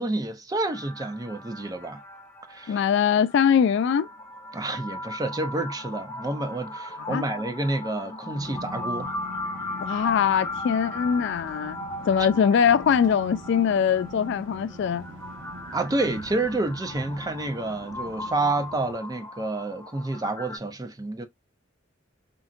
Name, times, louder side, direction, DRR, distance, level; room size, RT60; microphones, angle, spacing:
voice 1, 0.0-2.0 2.5-2.8 4.5-9.1 15.7-21.3, right 2 dB, 20° right, 0.5 m, -29 dB
sound 1, 0.7-20.6, left 1 dB, 10° left, 0.8 m, -38 dB
voice 2, 2.7-4.1 7.1-7.3 9.8-11.8 12.1-15.1, left 7 dB, 65° left, 0.3 m, -22 dB
sound 2, 8.3-18.9, equal, 85° right, 1.0 m, -43 dB
3.8 x 2.1 x 2.5 m
head